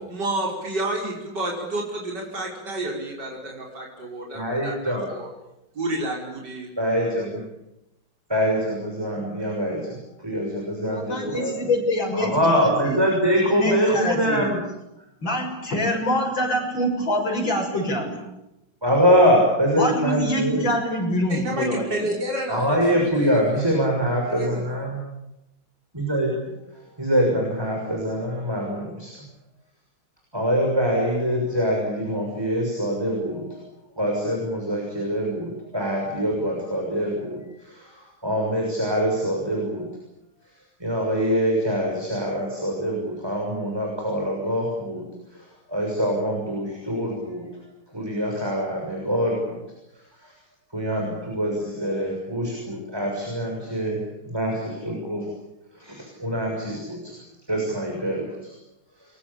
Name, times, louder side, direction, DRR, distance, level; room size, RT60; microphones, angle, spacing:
voice 1, 0.1-5.3 5.7-6.7 21.3-22.7 22.9-23.4 24.4-24.6, right 1 dB, 50° right, -2 dB, 6.2 m, -30 dB
voice 2, 4.3-5.1 6.8-7.4 8.3-10.0 10.2-11.5 12.1-14.5 18.8-20.6 22.5-25.0 25.9-26.5 27.0-29.1 30.3-33.4 34.0-39.8 40.8-45.0 45.7-47.4 47.9-49.6 50.2-50.3 50.7-54.0 54.3-55.2 55.8-57.1 57.5-58.5, equal, 10° right, 0 dB, 6.7 m, -24 dB
voice 3, 10.9-13.0 13.4-14.5 15.2-18.2 19.8-22.1, left 1 dB, 65° left, 1 dB, 7.5 m, -25 dB
29.5 x 23.0 x 8.8 m, 0.90 s
omnidirectional pair, 2.3 m